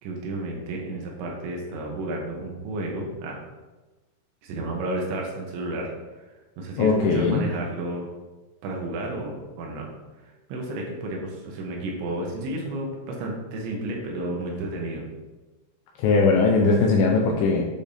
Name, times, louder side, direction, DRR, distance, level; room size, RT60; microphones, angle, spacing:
voice 1, 0.0-3.4 4.4-5.9 6.2-6.3 6.6-8.1 8.6-9.9 10.5-15.0, right 1 dB, 80° right, 0 dB, 3.0 m, -31 dB
voice 2, 6.8-7.5 16.0-17.6, left 4 dB, 85° left, 0 dB, 2.6 m, -20 dB
8.5 x 5.0 x 2.6 m, 1.2 s
omnidirectional pair, 5.6 m